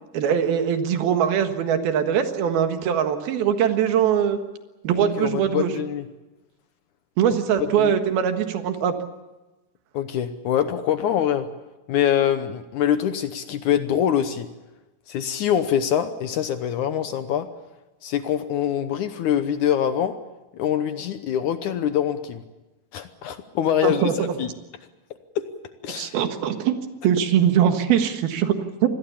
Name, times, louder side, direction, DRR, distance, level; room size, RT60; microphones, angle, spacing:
voice 1, 0.1-4.4 4.8-5.7 7.2-8.9 23.8-24.4 25.9-26.8 27.0-28.9, right 8 dB, 85° right, 7 dB, 3.5 m, -22 dB
voice 2, 5.0-6.1 7.8-7.9 9.9-11.5 11.9-14.5 15.1-17.5 18.0-20.2 20.5-22.4 22.9-24.0 24.4-24.5 25.4-25.5 25.8-26.2, left 9 dB, 70° left, 10 dB, 2.1 m, -24 dB
26.5 x 20.5 x 7.2 m, 1.1 s
omnidirectional pair, 4.2 m